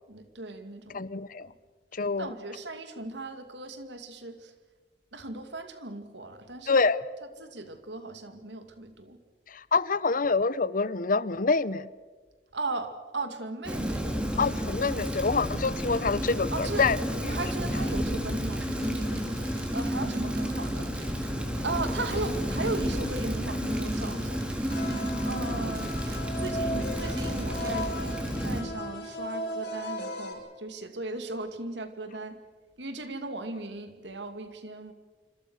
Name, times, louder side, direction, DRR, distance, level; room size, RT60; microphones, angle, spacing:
voice 1, 0.1-1.0 1.4-1.5 2.2-4.5 5.1-6.8 7.4-9.2 12.5-14.1 16.5-16.9 17.2-19.4 19.7-20.9 21.6-24.4 25.2-26.0 26.3-32.4 32.8-34.9, right 2 dB, 85° right, 8 dB, 2.6 m, -37 dB
voice 2, 0.9-1.5 1.9-2.3 3.0-3.1 6.7-7.0 9.5-11.9 14.4-17.4, left 4 dB, 50° left, 18 dB, 0.8 m, -26 dB
Rain, 13.6-28.6, equal, 5° right, 3.7 m, -31 dB
sound 1, 18.4-28.5, right 5 dB, 60° right, 5.2 m, -51 dB
sound 2, 24.7-30.3, equal, 70° left, 6.5 m, -36 dB
27.0 x 26.0 x 6.5 m, 1.4 s
head